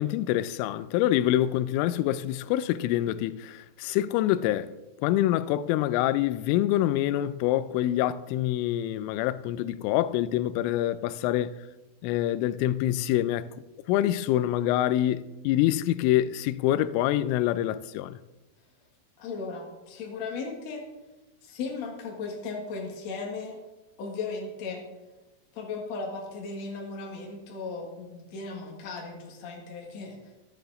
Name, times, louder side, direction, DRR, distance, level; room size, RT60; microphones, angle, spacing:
voice 1, 0.0-4.7 5.0-11.6 12.0-13.5 13.9-18.2, left 13 dB, 85° left, 3.1 m, -26 dB
voice 2, 19.2-20.8 21.4-23.6 24.0-24.8 25.5-30.2, left 4 dB, 60° left, 1.8 m, -36 dB
14.0 x 12.0 x 4.0 m
omnidirectional pair, 5.7 m